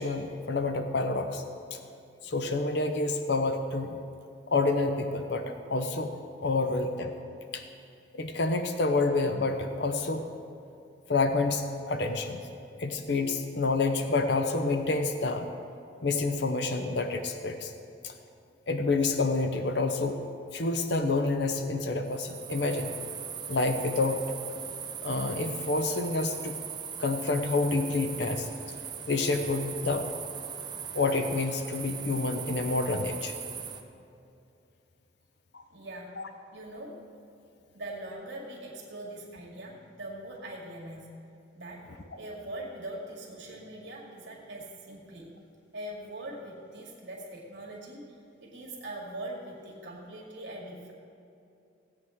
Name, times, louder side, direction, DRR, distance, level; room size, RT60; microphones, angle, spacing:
voice 1, 0.0-1.4 1.7-1.8 2.2-4.0 4.5-5.4 5.7-6.1 6.4-7.1 7.5-7.6 8.1-10.3 11.1-12.4 12.8-15.5 16.0-17.7 18.0-18.1 18.7-20.2 20.5-22.9 23.5-24.3 25.0-26.6 27.0-28.5 29.1-30.2 30.9-33.3 35.5-35.6 36.2-36.3, left 3 dB, 65° left, 6 dB, 0.7 m, -28 dB
sound 1, 22.1-33.8, right 7 dB, 25° right, 0.5 m, -40 dB
voice 2, 35.7-36.1 36.5-37.0 37.7-41.1 41.6-41.9 42.2-45.3 45.7-48.1 48.4-50.9, right 1 dB, 70° right, -3 dB, 2.1 m, -42 dB
17.0 x 8.6 x 3.6 m, 2.6 s
head